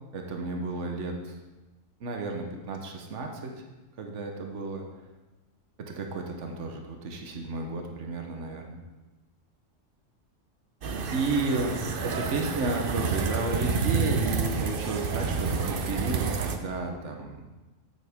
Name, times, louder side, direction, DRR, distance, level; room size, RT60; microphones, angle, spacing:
voice 1, 0.1-1.4 2.0-3.5 4.0-4.9 5.8-8.8 11.1-17.5, right 3 dB, 70° right, 3 dB, 1.3 m, -32 dB
sound 1, 10.8-16.6, right 5 dB, 50° right, 0.8 m, -29 dB
9.0 x 8.4 x 3.5 m, 1.1 s
omnidirectional pair, 1.3 m